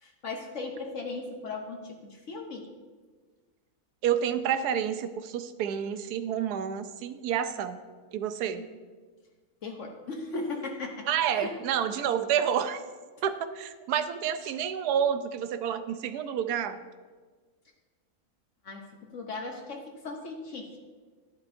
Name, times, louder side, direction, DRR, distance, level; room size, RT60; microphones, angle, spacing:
voice 1, 0.0-2.7 8.5-8.7 9.6-11.6 18.6-20.7, left 3 dB, 55° left, 2 dB, 1.1 m, -37 dB
voice 2, 4.0-7.8 8.1-8.6 11.1-12.8 13.2-16.8, right 8 dB, 85° right, 11 dB, 1.1 m, -29 dB
11.5 x 11.0 x 2.6 m, 1.4 s
omnidirectional pair, 1.6 m